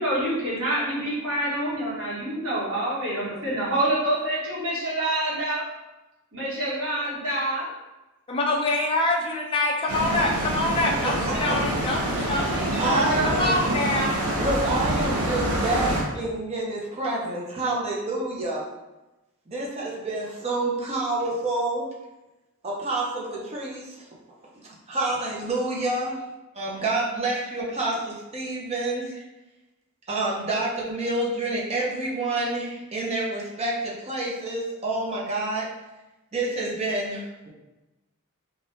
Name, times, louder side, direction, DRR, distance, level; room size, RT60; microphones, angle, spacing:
voice 1, 0.0-5.6 6.3-7.7 12.3-13.4, right 1 dB, 70° right, -8 dB, 1.2 m, -27 dB
voice 2, 8.3-12.7 13.2-14.2, left 2 dB, 25° left, -2 dB, 0.5 m, -25 dB
sound 1, 9.9-16.0, right 1 dB, 85° right, 0.8 m, -26 dB
voice 3, 12.8-13.7 14.4-18.6 19.5-21.8 22.6-24.1 24.9-26.2 26.5-29.2 30.1-35.7 36.3-37.5, right 2 dB, 30° right, -4 dB, 0.6 m, -28 dB
3.3 x 2.4 x 2.7 m, 1.0 s
head